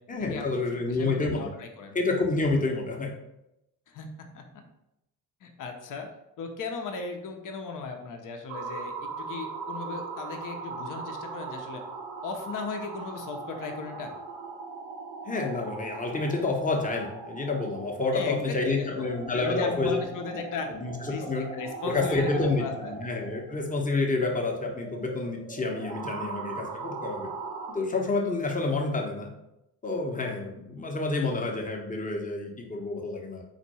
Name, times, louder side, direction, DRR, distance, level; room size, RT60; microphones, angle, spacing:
voice 1, 0.1-1.5 1.9-3.1 15.2-20.0 20.3-20.4 20.7-21.5 21.8-27.3 27.7-29.3 29.8-33.4, left 3 dB, 15° left, 1 dB, 1.0 m, -29 dB
voice 2, 0.9-2.0 3.9-4.6 5.4-6.1 6.4-11.8 12.2-14.1 18.1-20.7 21.1-22.9, left 4 dB, 40° left, 4 dB, 0.9 m, -37 dB
sound 1, 8.5-27.7, right 4 dB, 60° right, 0.9 m, -40 dB
4.3 x 2.6 x 4.2 m, 0.86 s
figure-of-eight pair, 45°, 47 cm